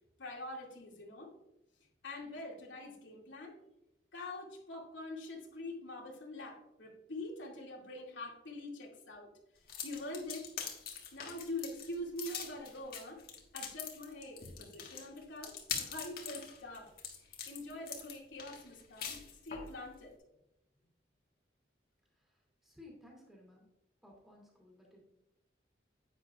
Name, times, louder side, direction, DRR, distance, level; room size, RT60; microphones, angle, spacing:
voice 1, 0.2-1.3 2.0-3.5 4.1-9.3 9.8-10.4 11.1-13.2 13.5-16.9 17.3-19.2 19.4-20.1, left 1 dB, 85° left, -1 dB, 2.3 m, -44 dB
sound 1, 9.7-19.7, left 7 dB, 50° left, 1.5 m, -43 dB
voice 2, 22.1-23.7 24.0-25.0, left 2 dB, ahead, -3 dB, 2.6 m, -58 dB
10.5 x 9.1 x 2.4 m, 0.88 s
head